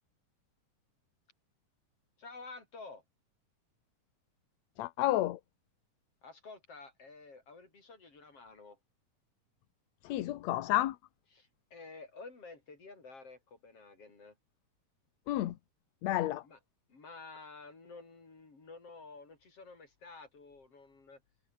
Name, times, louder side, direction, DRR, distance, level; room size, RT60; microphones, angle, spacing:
voice 1, 2.2-3.0 6.2-8.8 11.3-14.4 16.4-16.6 16.9-21.2, left 3 dB, 45° left, 6.8 m, -51 dB
voice 2, 4.8-5.4 10.0-11.0 15.3-15.6 16.0-16.4, left 15 dB, 70° left, 2.1 m, -31 dB
omnidirectional pair, 3.6 m